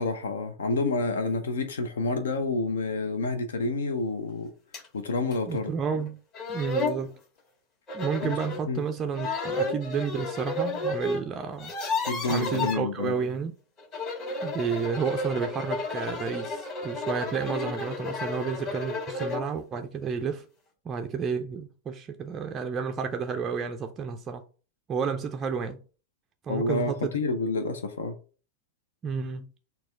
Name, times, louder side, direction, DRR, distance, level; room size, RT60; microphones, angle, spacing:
voice 1, 0.0-4.5 4.9-5.7 8.2-8.3 8.7-8.8 12.1-13.1 26.5-28.2, left 3 dB, 65° left, 0.5 m, -28 dB
sound 1, 4.7-4.9 5.3-5.4 6.1-6.2 6.3-7.0 7.9-8.6 9.1-11.2 11.5-12.8 13.8-19.5, left 2 dB, 35° left, 1.7 m, -32 dB
voice 2, 5.5-6.2 6.5-7.1 7.9-11.7 12.3-13.5 14.4-20.5 20.9-24.4 24.9-25.8 26.4-27.3 29.0-29.5, right 6 dB, 25° right, 0.3 m, -31 dB
4.1 x 2.2 x 4.5 m
figure-of-eight pair, 90°, 0 cm